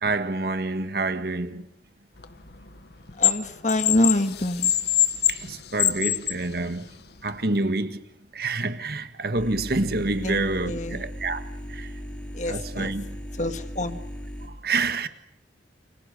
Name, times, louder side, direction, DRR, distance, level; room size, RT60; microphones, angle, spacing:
voice 1, 0.0-1.6 5.3-5.5 5.7-6.8 7.2-8.0 8.3-11.4 11.7-11.9 12.5-13.1 14.6-15.1, right 3 dB, 55° right, 1.6 m, -27 dB
sound 1, 2.2-3.3 3.7-6.4 7.2-7.3, left 12 dB, 60° left, 1.4 m, -23 dB
voice 2, 3.2-4.7 10.2-11.0 12.3-12.9 13.3-14.0, left 1 dB, 40° left, 1.6 m, -26 dB
sound 2, 9.3-14.5, equal, 5° left, 4.7 m, -37 dB
29.5 x 25.5 x 6.7 m
head